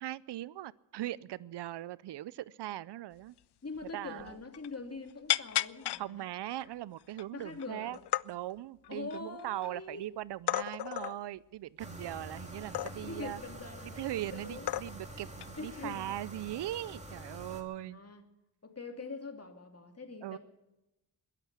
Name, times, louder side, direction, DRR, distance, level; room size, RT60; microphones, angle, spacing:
voice 1, 0.0-3.4 3.9-4.4 6.0-8.0 8.2-13.4 13.8-18.0 20.2-20.4, right 14 dB, 75° right, 21 dB, 0.5 m, -40 dB
sound 1, 3.4-3.5 3.8-3.9 4.2-4.7 5.3-6.0 6.6-6.7 7.1-7.7 7.9-8.3 8.8-9.7 10.5-11.2 12.7-13.2 14.1-14.2 14.7-15.1 15.4-15.6 16.7-17.0, left 14 dB, 70° left, 0.5 m, -33 dB
voice 2, 3.6-6.2 7.3-7.9 8.9-10.1 13.0-14.7 15.5-16.0 17.8-18.2 18.6-20.4, left 4 dB, 35° left, 5 dB, 2.7 m, -43 dB
sound 2, 11.8-17.6, right 1 dB, 15° right, 3.0 m, -47 dB
21.5 x 8.3 x 7.9 m, 0.95 s
cardioid pair, 60°, 42 cm